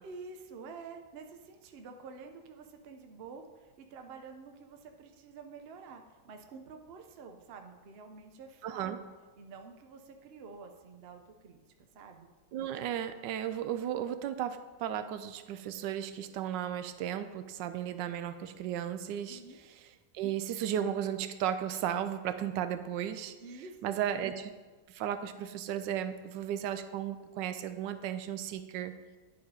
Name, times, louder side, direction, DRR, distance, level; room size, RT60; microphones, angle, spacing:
voice 1, 0.0-8.9 9.4-12.3 19.3-19.6 23.4-24.0, right 4 dB, 55° right, 5 dB, 0.7 m, -49 dB
voice 2, 8.6-9.0 12.5-19.4 20.1-23.3 23.8-24.5 24.9-28.9, right 10 dB, 85° right, 10 dB, 1.2 m, -35 dB
10.5 x 4.8 x 4.8 m, 1.3 s
omnidirectional pair, 1.9 m